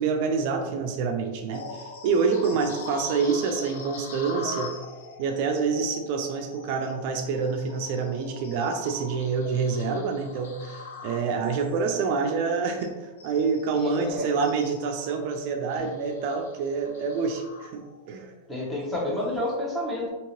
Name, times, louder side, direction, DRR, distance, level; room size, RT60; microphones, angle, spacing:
voice 1, 0.0-4.7 5.2-17.8 18.1-18.3, right 5 dB, 50° right, 4 dB, 0.3 m, -27 dB
sound 1, 1.5-18.2 18.6-18.8 19.4-19.5, left 4 dB, 75° left, 0.5 m, -43 dB
voice 2, 13.7-14.3 15.8-15.9 18.5-20.1, left 1 dB, 10° left, -4 dB, 0.9 m, -30 dB
2.8 x 2.7 x 2.9 m, 1.2 s
supercardioid pair, 140°, 0 cm